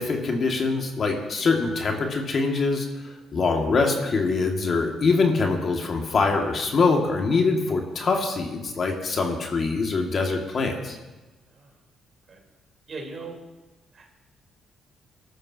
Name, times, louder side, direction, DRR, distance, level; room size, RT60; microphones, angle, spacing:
voice 1, 0.0-11.0, left 4 dB, 50° left, 2 dB, 2.0 m, -24 dB
voice 2, 12.9-13.4 13.9-14.1, right 3 dB, 50° right, 0 dB, 3.7 m, -39 dB
21.5 x 13.0 x 2.8 m, 1.1 s
cardioid pair, 90°, 0 cm